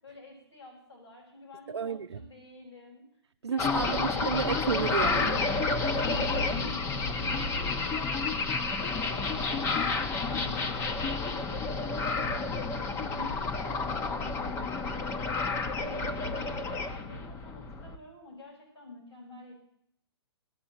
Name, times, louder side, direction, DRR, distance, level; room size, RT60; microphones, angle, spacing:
voice 1, 0.0-3.0 3.5-4.5 5.8-12.5 12.9-19.5, left 2 dB, 90° left, -5 dB, 7.1 m, -48 dB
voice 2, 1.7-2.2 3.4-5.4, right 6 dB, 75° right, 4 dB, 0.6 m, -31 dB
sound 1, 3.6-18.0, left 4 dB, 20° left, 1.1 m, -30 dB
18.5 x 6.8 x 8.9 m, 0.71 s
figure-of-eight pair, 120°, 14 cm